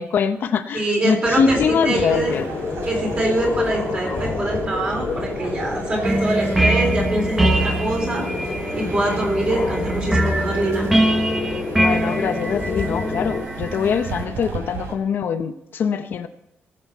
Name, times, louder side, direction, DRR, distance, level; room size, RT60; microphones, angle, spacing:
voice 1, 0.0-2.4 11.8-16.3, left 6 dB, 50° left, 8 dB, 0.6 m, -23 dB
voice 2, 0.7-2.4 2.9-10.9, right 2 dB, 30° right, 0 dB, 3.6 m, -24 dB
sound 1, 1.2-13.4, left 4 dB, 30° left, 1.7 m, -29 dB
sound 2, 2.1-14.9, right 4 dB, 85° right, 3.0 m, -35 dB
sound 3, 6.0-14.2, right 1 dB, 5° right, 0.8 m, -23 dB
19.5 x 7.7 x 4.5 m, 0.91 s
cardioid pair, 180°, 4 cm